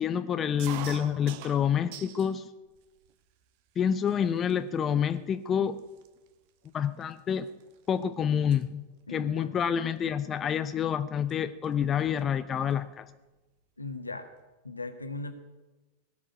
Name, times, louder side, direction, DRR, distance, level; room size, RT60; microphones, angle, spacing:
voice 1, 0.0-2.5 3.8-5.8 6.7-7.5 7.9-8.8 9.1-13.1, left 8 dB, 25° left, 12 dB, 0.6 m, -28 dB
sound 1, 0.6-2.3 2.8-3.4 4.1-4.2 4.4-4.8 5.5-5.6 5.8-8.0 8.3-8.6 10.0-10.2 11.3-11.4 11.6-11.7 12.0-12.9, right 11 dB, 45° right, 1.3 m, -44 dB
voice 2, 9.1-9.6 13.8-14.3 14.6-15.3, left 3 dB, 80° left, 7 dB, 1.5 m, -38 dB
18.5 x 7.2 x 9.7 m, 1.1 s
figure-of-eight pair, 90°, 0 cm